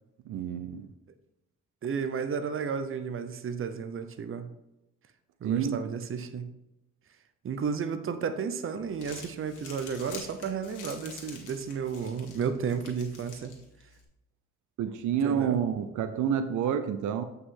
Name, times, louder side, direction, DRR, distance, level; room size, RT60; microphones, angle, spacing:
voice 1, 0.3-0.9 5.4-5.8 14.8-17.2, right 8 dB, 80° right, 10 dB, 0.7 m, -28 dB
voice 2, 1.8-4.5 5.4-6.5 7.4-13.5 15.2-15.6, right 6 dB, 45° right, 10 dB, 0.8 m, -32 dB
Crumpling crinkling, 8.8-14.0, left 5 dB, 85° left, 1.8 m, -47 dB
8.3 x 5.6 x 3.8 m, 0.93 s
cardioid pair, 90°, 30 cm